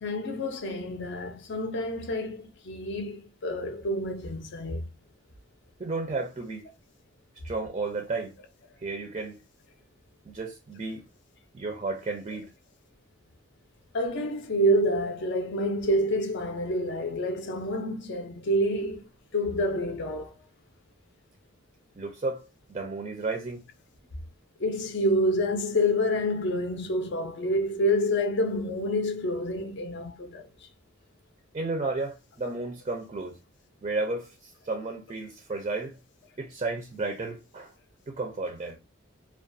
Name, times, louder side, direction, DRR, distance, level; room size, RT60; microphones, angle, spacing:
voice 1, 0.0-4.9 13.9-20.3 24.6-30.7, equal, 55° left, 0.5 m, -28 dB
voice 2, 5.8-6.7 7.4-8.3 8.8-9.4 10.3-11.0 11.5-12.5 22.0-23.6 31.5-33.4 33.8-35.9 36.4-37.7 38.1-38.8, right 3 dB, 30° right, 0.4 m, -33 dB
2.3 x 2.2 x 2.5 m
head